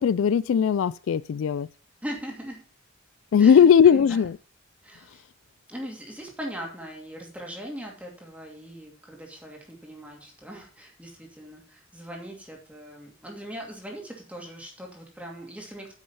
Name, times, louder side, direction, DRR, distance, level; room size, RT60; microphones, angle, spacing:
voice 1, 0.0-1.7 3.3-4.4, left 7 dB, 70° left, 0.3 m, -18 dB
voice 2, 2.0-2.6 3.4-4.2 4.8-5.2 5.7-15.9, equal, 5° right, 2.5 m, -40 dB
8.9 x 6.3 x 5.6 m
head